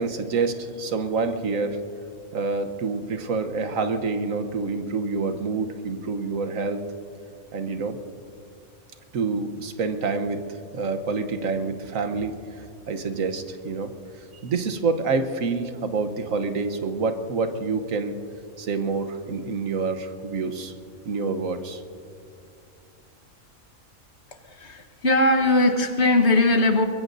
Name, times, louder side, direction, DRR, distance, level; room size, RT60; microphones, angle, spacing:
voice 1, 0.0-1.8 2.3-6.8 7.5-8.0 9.1-10.4 10.7-12.3 12.9-13.9 14.4-18.2 18.6-20.7 21.0-21.8, right 4 dB, 85° right, 8 dB, 1.4 m, -27 dB
voice 2, 24.5-26.9, left 2 dB, 55° left, 5 dB, 1.5 m, -20 dB
24.0 x 21.5 x 2.7 m, 2.4 s
omnidirectional pair, 1.4 m